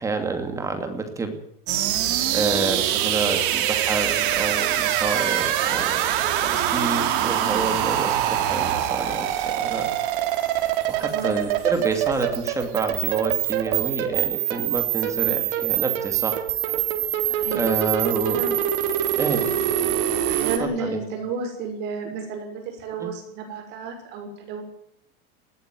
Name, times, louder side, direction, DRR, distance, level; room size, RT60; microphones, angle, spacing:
voice 1, 0.0-1.4 2.3-6.0 6.4-9.9 10.9-16.4 17.5-18.4 19.2-19.4 20.6-21.0 23.0-23.1, right 3 dB, 10° right, 6 dB, 2.5 m, -28 dB
sound 1, 1.7-20.6, right 11 dB, 60° right, 4.0 m, -24 dB
voice 2, 7.0-7.3 11.0-11.5 15.1-15.4 17.3-17.6 18.2-18.5 19.3-19.5 20.3-24.6, right 4 dB, 35° right, 4 dB, 6.0 m, -33 dB
20.0 x 17.5 x 9.2 m, 0.75 s
supercardioid pair, 180°, 30 cm